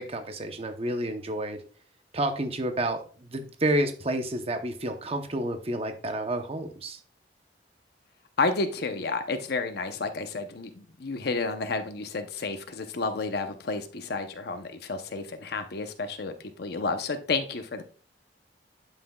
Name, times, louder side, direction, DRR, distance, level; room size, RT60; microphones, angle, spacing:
voice 1, 0.0-1.6 2.1-7.0, right 1 dB, 35° right, 6 dB, 0.8 m, -30 dB
voice 2, 8.4-16.3 16.6-17.8, left 3 dB, 60° left, 7 dB, 0.7 m, -31 dB
11.5 x 5.9 x 2.3 m, 0.40 s
head